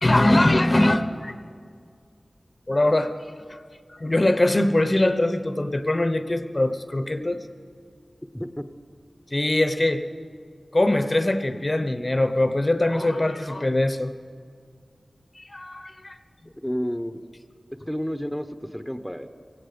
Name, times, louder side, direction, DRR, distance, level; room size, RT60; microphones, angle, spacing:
voice 1, 0.0-1.4 2.7-3.1 3.5-3.6 3.9-7.4 9.3-10.0 10.7-14.1 15.4-16.2, left 1 dB, 35° left, 10 dB, 0.7 m, -22 dB
voice 2, 8.3-8.7 16.5-17.2 17.9-19.3, equal, ahead, 9 dB, 0.7 m, -30 dB
17.0 x 16.5 x 5.1 m, 2.1 s
wide cardioid pair, 70°, 0 cm